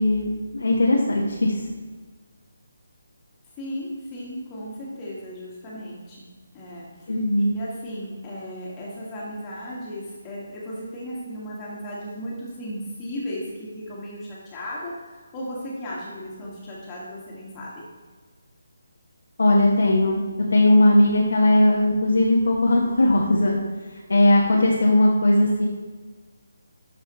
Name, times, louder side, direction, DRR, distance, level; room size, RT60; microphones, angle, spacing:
voice 1, 0.0-1.7 7.1-7.6 19.4-20.2 20.5-23.6 23.9-25.6, left 1 dB, 65° left, -2 dB, 1.1 m, -19 dB
voice 2, 3.6-6.3 6.5-6.9 7.4-14.9 15.3-17.8, equal, 20° left, -6 dB, 1.7 m, -35 dB
12.0 x 4.8 x 3.0 m, 1.4 s
figure-of-eight pair, 150°, 0 cm